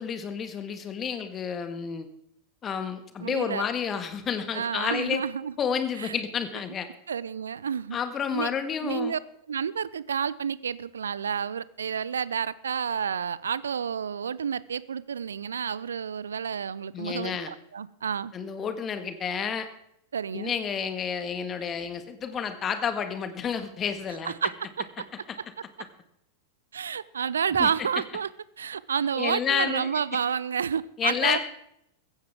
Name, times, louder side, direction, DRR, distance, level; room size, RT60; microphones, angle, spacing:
voice 1, 0.0-2.1 2.6-5.2 5.6-6.9 7.9-9.1 16.9-17.5 18.3-19.7 20.3-24.3 27.6-27.7 29.2-29.9 31.0-31.4, left 7 dB, 25° left, 9 dB, 1.7 m, -30 dB
voice 2, 3.2-3.7 4.5-5.5 6.0-6.2 7.1-8.0 8.3-8.5 8.8-9.2 9.5-18.3 20.1-20.5 24.2-25.1 26.7-28.3 28.6-31.4, right 7 dB, 70° right, 19 dB, 0.5 m, -30 dB
15.5 x 15.5 x 3.6 m, 0.74 s
figure-of-eight pair, 90°, 0 cm